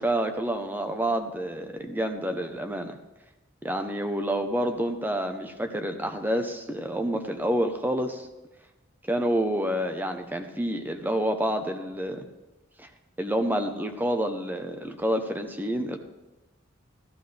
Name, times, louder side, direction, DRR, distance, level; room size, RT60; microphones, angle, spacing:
voice 1, 0.0-3.0 3.6-8.3 9.0-12.3 12.8-12.9 13.2-16.0, right 1 dB, 10° right, 6 dB, 0.8 m, -28 dB
14.5 x 14.0 x 3.5 m, 1.0 s
head